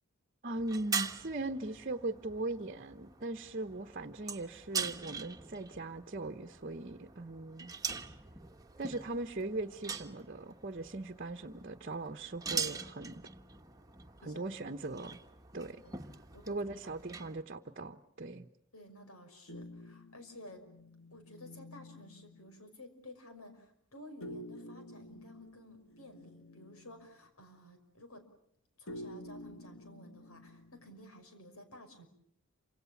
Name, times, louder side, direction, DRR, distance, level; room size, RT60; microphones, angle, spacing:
voice 1, 0.4-7.7 8.8-13.3 14.2-15.2 15.5-15.8 16.5-18.5, right 2 dB, 40° right, 7 dB, 1.0 m, -39 dB
sound 1, 0.6-17.4, right 6 dB, 15° right, 1.3 m, -43 dB
voice 2, 16.8-17.3 18.7-20.6 21.1-28.2 28.8-32.1, left 1 dB, 85° left, 7 dB, 5.7 m, -53 dB
sound 2, 19.5-22.6 24.2-27.1 28.9-31.0, left 1 dB, 65° left, 1.4 m, -49 dB
28.5 x 26.0 x 7.1 m, 0.69 s
head